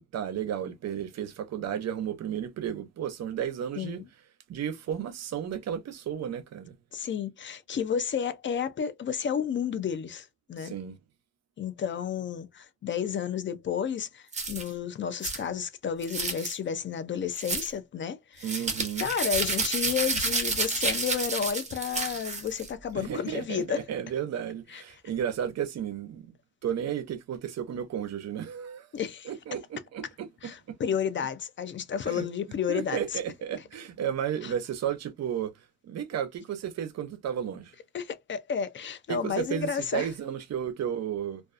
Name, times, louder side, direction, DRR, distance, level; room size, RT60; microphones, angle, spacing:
voice 1, 0.0-4.0 4.5-6.7 10.6-11.0 18.4-19.1 22.9-26.3 26.6-28.9 29.3-30.8 32.1-32.3 32.7-35.5 35.8-37.7 39.1-41.4, right 9 dB, 60° right, 0.6 m, -33 dB
voice 2, 6.9-10.7 11.6-18.6 19.0-23.8 24.7-24.8 28.9-29.3 30.4-33.2 34.4-34.5 37.9-40.1, left 7 dB, 40° left, 0.4 m, -31 dB
sound 1, 14.3-14.7 15.2-15.4 16.0-16.6 17.4-17.7 18.4-22.7, right 3 dB, 25° right, 1.0 m, -30 dB
2.3 x 2.3 x 2.3 m
cardioid pair, 90°, 30 cm